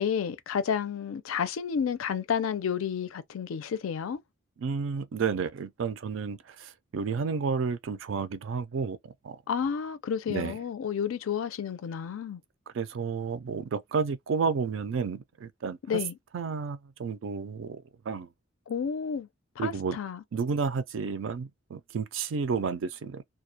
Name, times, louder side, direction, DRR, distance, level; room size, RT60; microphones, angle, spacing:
voice 1, 0.0-4.2 9.5-12.4 15.9-16.1 18.7-19.3 19.6-20.2, left 7 dB, 85° left, 0.4 m, -31 dB
voice 2, 4.6-9.0 9.2-9.4 10.3-10.6 12.7-16.0 16.3-18.3 19.6-20.0 20.3-23.2, right 5 dB, 65° right, 0.4 m, -31 dB
2.3 x 2.1 x 2.7 m
head